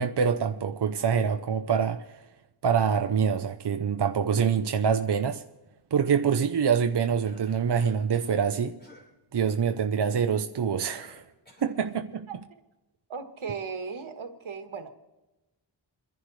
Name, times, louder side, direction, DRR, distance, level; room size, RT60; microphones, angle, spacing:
voice 1, 0.0-2.0 2.6-5.4 5.9-8.7 9.3-11.2 11.6-12.3, right 7 dB, 60° right, 0.8 m, -25 dB
Cough, 7.2-8.4 8.8-9.1 9.3-9.6 10.9-11.8, left 2 dB, 20° left, 5.4 m, -52 dB
voice 2, 12.3-12.6 13.1-14.9, right 5 dB, 90° right, 1.6 m, -37 dB
29.0 x 11.0 x 3.2 m
wide cardioid pair, 60°, 47 cm